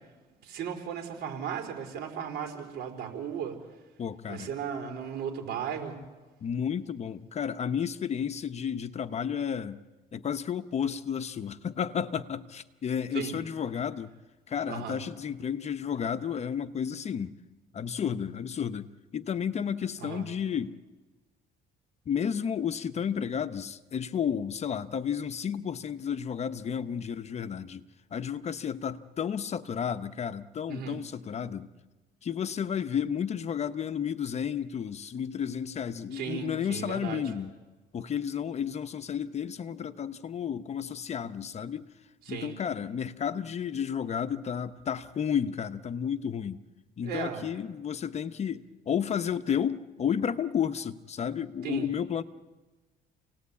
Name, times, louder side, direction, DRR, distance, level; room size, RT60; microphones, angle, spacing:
voice 1, 0.4-3.6 4.3-6.0 13.1-13.4 14.7-15.0 20.0-20.3 30.7-31.0 36.1-37.2 42.3-42.6 47.0-47.5 51.6-51.9, right 8 dB, 70° right, 3 dB, 4.5 m, -36 dB
voice 2, 4.0-4.5 6.4-9.8 10.1-14.1 14.5-17.3 17.7-20.8 22.1-27.8 28.1-31.7 32.2-37.5 37.9-41.9 42.3-46.6 47.0-52.2, left 8 dB, 40° left, 11 dB, 1.0 m, -32 dB
28.5 x 18.5 x 8.5 m, 1.2 s
cardioid pair, 110°, 17 cm